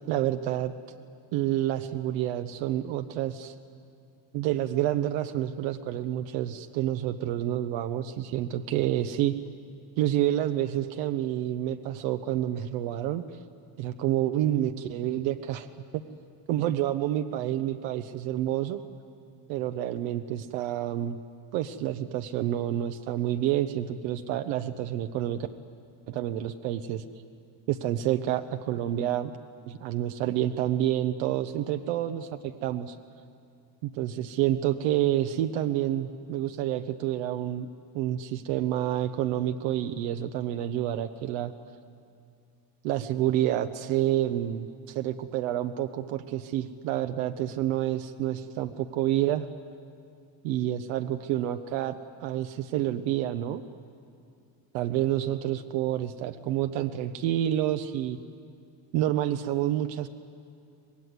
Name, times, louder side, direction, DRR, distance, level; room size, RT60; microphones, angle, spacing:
voice 1, 0.1-0.7 1.3-3.5 4.3-9.3 10.0-13.2 13.8-15.7 15.9-16.0 16.5-18.8 19.5-21.2 21.5-25.4 26.1-27.0 27.7-29.3 29.7-33.0 33.8-37.7 37.9-41.5 42.8-49.5 50.4-53.6 54.7-58.2 58.9-60.1, right 12 dB, 85° right, 8 dB, 1.0 m, -28 dB
25.0 x 20.0 x 9.6 m, 2.4 s
cardioid pair, 135°, 48 cm